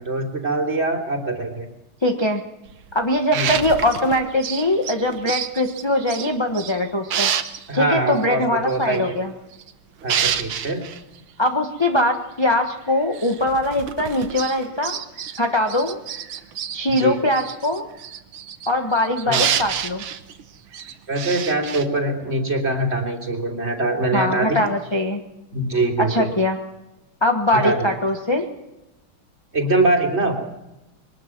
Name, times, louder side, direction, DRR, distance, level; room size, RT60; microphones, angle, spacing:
voice 1, 0.0-1.7 3.3-3.6 7.7-9.2 10.0-10.8 17.0-17.2 19.3-19.4 21.1-24.6 25.5-26.3 27.6-27.8 29.5-30.4, right 2 dB, 30° right, 1 dB, 3.5 m, -23 dB
voice 2, 2.0-2.4 2.9-7.3 7.7-9.3 11.4-15.0 15.4-16.0 16.7-17.8 18.7-20.0 24.1-25.2 26.0-26.6 27.2-28.5, left 1 dB, 15° left, 2 dB, 1.1 m, -21 dB
sound 1, 2.7-6.8 7.1-7.7 8.1-8.3 8.7-9.7 10.0-11.0 11.8-11.9 12.1-12.2 12.9-15.4 15.7-21.9, right 8 dB, 85° right, 1.9 m, -28 dB
23.0 x 19.5 x 6.1 m, 0.94 s
omnidirectional pair, 2.2 m